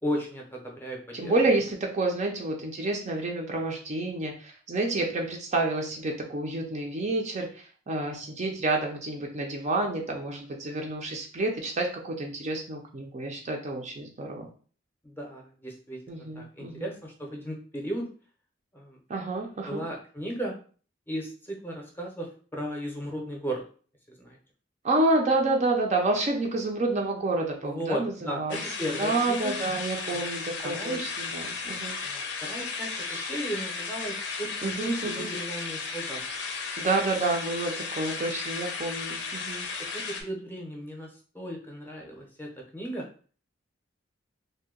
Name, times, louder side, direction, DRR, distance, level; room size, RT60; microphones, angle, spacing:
voice 1, 0.0-1.3 15.0-16.0 16.4-18.1 18.7-19.0 19.7-20.6 21.1-23.6 24.1-24.4 27.6-29.5 30.1-30.3 30.6-31.0 32.0-36.2 39.9-43.1, equal, 10° left, 0 dB, 0.6 m, -35 dB
voice 2, 1.1-14.5 16.1-16.9 19.1-19.9 24.8-32.0 33.1-33.2 34.6-35.3 36.8-39.7, right 2 dB, 35° right, 1 dB, 0.4 m, -29 dB
sound 1, 28.5-40.2, left 4 dB, 65° left, 0.5 m, -35 dB
2.7 x 2.1 x 3.6 m, 0.41 s
head